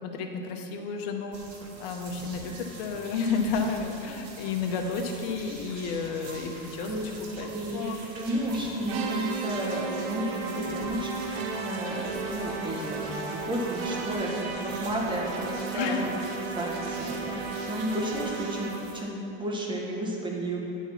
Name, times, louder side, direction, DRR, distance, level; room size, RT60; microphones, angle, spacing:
voice 1, 0.0-1.4 1.8-6.9 7.4-7.5 7.7-8.0 15.7-16.1, left 5 dB, 65° left, 4 dB, 1.0 m, -31 dB
sound 1, 1.3-19.0, right 2 dB, 50° right, 1.5 m, -45 dB
voice 2, 8.1-16.1 16.5-20.6, right 1 dB, 15° right, -2 dB, 1.4 m, -32 dB
sound 2, 8.9-19.0, right 4 dB, 90° right, 0.9 m, -34 dB
9.1 x 4.6 x 5.8 m, 2.9 s
supercardioid pair, 115°, 31 cm